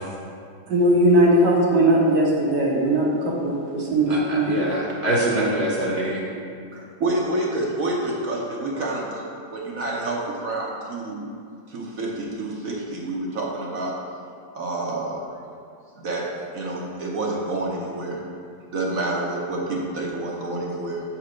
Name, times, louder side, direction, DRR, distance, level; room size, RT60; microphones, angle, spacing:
voice 1, 0.7-4.6, right 1 dB, 75° right, -3 dB, 1.8 m, -19 dB
voice 2, 4.1-6.2, right 1 dB, 10° left, -6 dB, 0.8 m, -24 dB
voice 3, 6.7-9.2 9.5-11.3 11.7-13.9 14.5-15.3 16.0-16.3 16.5-18.2 18.7-21.0, right 2 dB, 55° right, -3 dB, 1.2 m, -28 dB
7.0 x 4.4 x 5.0 m, 2.3 s
omnidirectional pair, 1.9 m